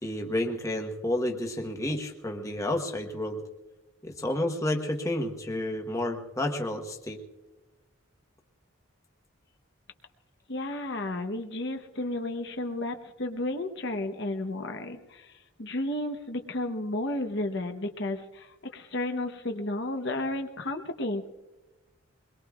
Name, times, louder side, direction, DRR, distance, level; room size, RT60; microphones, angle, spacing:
voice 1, 0.0-3.4 4.0-7.2, left 1 dB, 15° left, 2 dB, 1.1 m, -30 dB
voice 2, 10.5-15.3 15.6-21.3, left 1 dB, 55° left, 5 dB, 0.9 m, -32 dB
23.0 x 21.5 x 2.4 m, 1.1 s
head